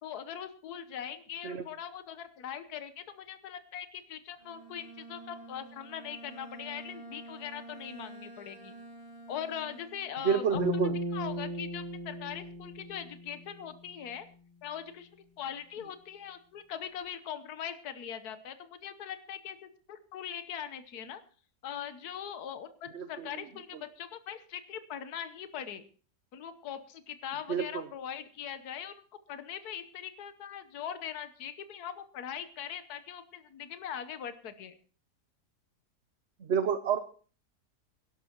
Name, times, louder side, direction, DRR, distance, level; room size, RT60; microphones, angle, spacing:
voice 1, 0.0-8.7 9.3-10.6 11.1-14.3 14.6-21.2 21.6-25.8 26.3-28.9 29.3-34.7, left 9 dB, 75° left, 11 dB, 1.5 m, -41 dB
Bowed string instrument, 4.4-10.4, right 2 dB, 35° right, 2.0 m, -49 dB
voice 2, 10.2-10.9 22.9-23.3 27.5-27.8 36.4-37.0, right 6 dB, 50° right, 10 dB, 0.9 m, -29 dB
sound 1, 10.5-13.9, equal, 35° left, 3.2 m, -37 dB
23.0 x 12.0 x 3.0 m, 0.38 s
omnidirectional pair, 1.7 m